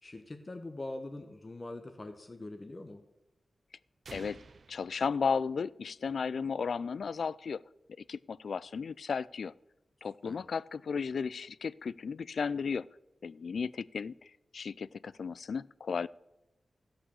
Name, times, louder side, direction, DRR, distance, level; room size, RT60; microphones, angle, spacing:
voice 1, 0.0-3.0 10.2-10.4, left 2 dB, 35° left, 6 dB, 0.9 m, -43 dB
sound 1, 4.0-6.0, right 4 dB, 60° right, 0.3 m, -53 dB
voice 2, 4.1-4.4 4.7-7.6 8.1-9.5 10.0-12.9 13.2-16.1, left 5 dB, 80° left, 20 dB, 0.3 m, -34 dB
14.0 x 5.6 x 7.0 m, 0.94 s
wide cardioid pair, 85°, 0 cm